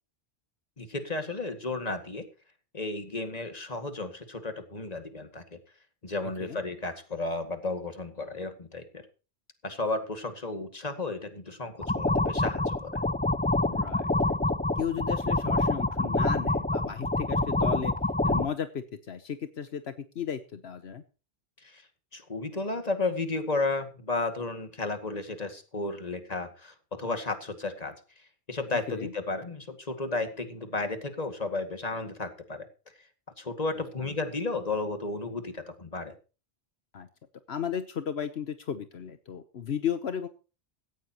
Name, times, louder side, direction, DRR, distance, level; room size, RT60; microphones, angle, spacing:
voice 1, 0.8-2.2 2.7-5.6 6.0-8.9 9.6-13.0 21.6-21.8 22.1-27.9 28.5-32.7 33.4-36.1, left 3 dB, 40° left, 7 dB, 2.2 m, -33 dB
sound 1, 11.8-18.5, left 2 dB, 10° left, 0.4 m, -27 dB
voice 2, 13.7-14.4 14.8-17.9 18.2-21.0 28.9-29.1 33.8-34.2 36.9-37.1 37.5-40.3, left 8 dB, 75° left, 10 dB, 1.2 m, -35 dB
17.0 x 15.0 x 3.0 m, 0.35 s
omnidirectional pair, 1.1 m